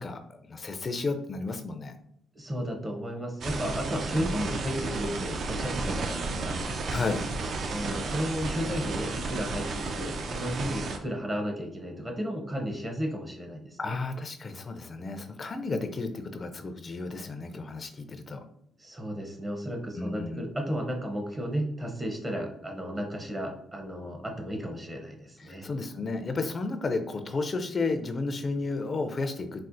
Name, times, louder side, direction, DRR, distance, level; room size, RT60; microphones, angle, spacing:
voice 1, 0.0-1.9 4.1-4.3 6.9-7.4 13.8-18.4 20.0-20.5 25.4-29.7, left 3 dB, 40° left, 7 dB, 0.4 m, -33 dB
voice 2, 2.3-6.6 7.7-14.0 18.8-25.7, equal, 20° right, 2 dB, 0.7 m, -33 dB
sound 1, 3.4-11.0, right 3 dB, 55° right, 0.4 m, -33 dB
4.1 x 2.0 x 2.5 m, 0.71 s
cardioid pair, 90°, 0 cm